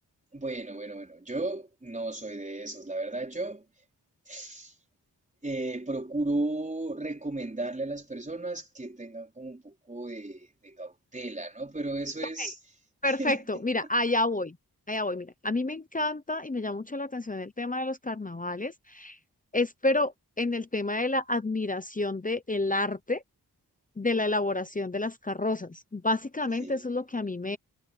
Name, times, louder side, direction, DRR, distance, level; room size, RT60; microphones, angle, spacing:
voice 1, 0.3-3.6 4.3-4.7 5.4-12.5 13.0-13.4 26.6-26.8, right 2 dB, 20° right, 4.7 m, -35 dB
voice 2, 13.0-14.6 14.9-19.2 19.5-23.2 24.0-27.6, left 2 dB, 20° left, 0.9 m, -29 dB
wide cardioid pair, 100°, 37 cm